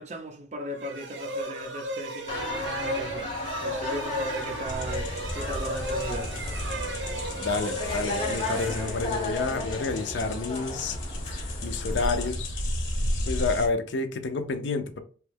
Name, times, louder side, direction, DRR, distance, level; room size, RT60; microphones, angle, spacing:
voice 1, 0.0-3.3 3.6-6.4, right 1 dB, 35° right, 0.5 m, -37 dB
sound 1, 0.7-9.5, equal, 75° right, 0.7 m, -35 dB
sound 2, 2.3-12.3, left 2 dB, 25° left, 0.7 m, -35 dB
sound 3, 4.7-13.7, left 1 dB, 85° left, 0.9 m, -33 dB
voice 2, 7.4-11.0 11.6-12.5 13.3-15.0, left 3 dB, 70° left, 0.5 m, -29 dB
3.0 x 2.3 x 3.3 m
head